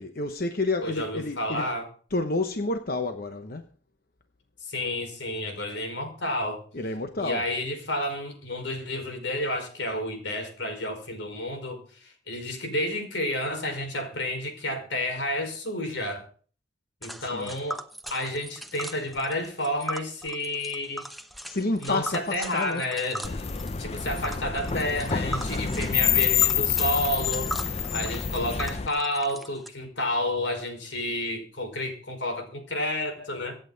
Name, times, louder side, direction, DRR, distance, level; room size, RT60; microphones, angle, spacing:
voice 1, 0.0-1.7 2.1-3.7 6.7-7.4 17.2-17.5 21.5-22.8, left 2 dB, 55° left, 1.0 m, -29 dB
voice 2, 0.8-1.9 4.6-6.6 7.2-16.3 17.0-17.8 18.1-21.0 21.8-23.5 23.8-33.5, left 1 dB, 85° left, 5.0 m, -30 dB
Tick, 17.0-29.7, right 1 dB, ahead, 0.8 m, -39 dB
sound 1, 23.2-28.9, left 7 dB, 35° left, 0.5 m, -27 dB
25.5 x 9.0 x 4.0 m
head